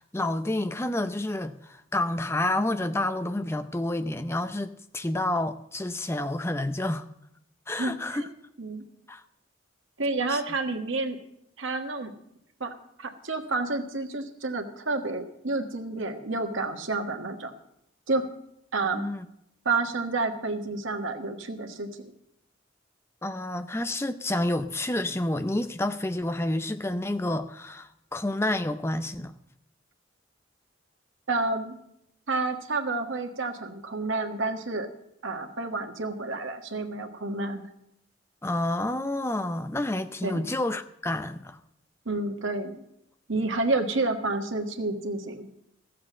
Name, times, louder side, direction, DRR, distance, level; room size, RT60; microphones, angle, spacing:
voice 1, 0.0-7.1 7.7-8.2 9.1-9.2 10.3-10.4 18.9-19.2 23.2-29.3 38.4-41.6, left 1 dB, 15° left, 0.5 m, -29 dB
voice 2, 7.8-8.3 8.6-8.8 10.0-11.2 11.6-12.1 12.6-12.7 13.0-17.5 18.1-18.2 18.7-19.0 19.6-21.9 31.3-31.8 32.3-34.9 35.2-37.6 40.2-40.5 42.0-42.8 43.3-45.5, right 3 dB, 80° right, 1.5 m, -29 dB
14.0 x 7.6 x 7.3 m
head